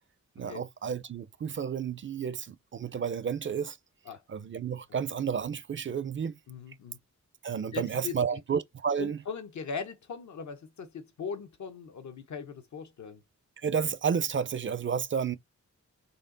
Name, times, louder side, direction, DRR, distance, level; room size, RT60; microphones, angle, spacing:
voice 1, 0.4-3.8 4.3-6.3 7.4-9.2 13.6-15.4, right 7 dB, 45° right, 0.4 m, -31 dB
voice 2, 6.5-7.0 7.7-8.4 9.0-13.2, left 5 dB, 75° left, 0.8 m, -39 dB
4.3 x 3.2 x 3.8 m
wide cardioid pair, 145°, 29 cm